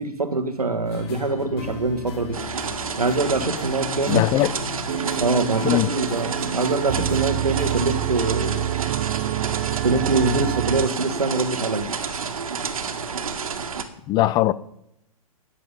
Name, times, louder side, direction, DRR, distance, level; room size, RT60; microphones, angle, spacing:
voice 1, 0.0-2.4 3.0-4.2 5.2-8.7 9.8-12.2, right 3 dB, 85° right, 1.4 m, -24 dB
sound 1, 0.8-7.9, left 3 dB, 45° left, 2.3 m, -36 dB
sound 2, 2.3-13.8, right 6 dB, 65° right, 1.8 m, -30 dB
voice 2, 4.1-4.5 5.6-5.9 14.1-14.5, left 16 dB, 20° left, 0.6 m, -19 dB
sound 3, 4.9-10.9, right 14 dB, 35° right, 0.4 m, -27 dB
14.0 x 10.0 x 5.3 m
figure-of-eight pair, 115°, 19 cm